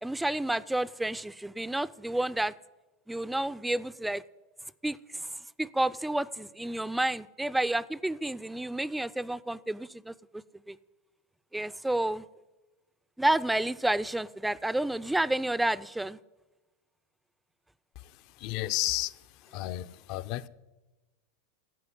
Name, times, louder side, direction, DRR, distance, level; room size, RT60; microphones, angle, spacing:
voice 1, 0.0-2.5 3.1-4.2 4.8-5.3 5.6-10.8 11.5-12.2 13.2-16.2, right 1 dB, 5° right, 0.4 m, -30 dB
voice 2, 18.4-19.1 19.5-20.5, left 17 dB, 55° left, 0.6 m, -32 dB
12.5 x 8.0 x 9.9 m
hypercardioid pair, 110°, 0 cm